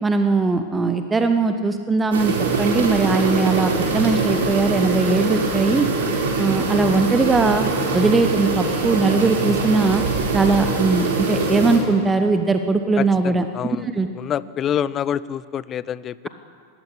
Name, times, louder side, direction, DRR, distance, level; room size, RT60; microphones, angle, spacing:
voice 1, 0.0-5.9 6.4-7.6 7.9-10.0 10.3-13.5 13.8-14.1, right 3 dB, 15° right, 8 dB, 1.1 m, -20 dB
sound 1, 2.1-11.8, right 3 dB, 60° right, 4.7 m, -23 dB
voice 2, 13.0-13.9 14.2-16.3, left 9 dB, 30° left, 19 dB, 0.6 m, -27 dB
20.0 x 15.5 x 10.0 m, 2.2 s
figure-of-eight pair, 90°, 0 cm